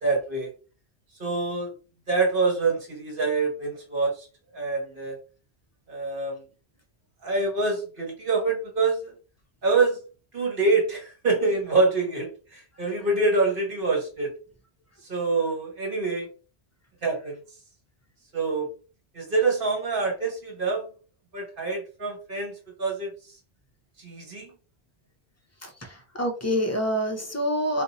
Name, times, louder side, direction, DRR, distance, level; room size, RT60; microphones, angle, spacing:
voice 1, 0.0-0.5 1.2-1.7 2.1-4.3 4.5-5.2 5.9-6.4 7.2-9.1 9.6-10.0 10.3-14.3 15.1-16.3 17.0-17.4 18.3-18.7 19.1-20.8 21.3-23.1 24.0-24.5, right 3 dB, 55° right, 0 dB, 1.3 m, -25 dB
voice 2, 25.6-27.8, equal, 20° left, 2 dB, 0.5 m, -27 dB
2.6 x 2.5 x 4.0 m, 0.36 s
omnidirectional pair, 1.1 m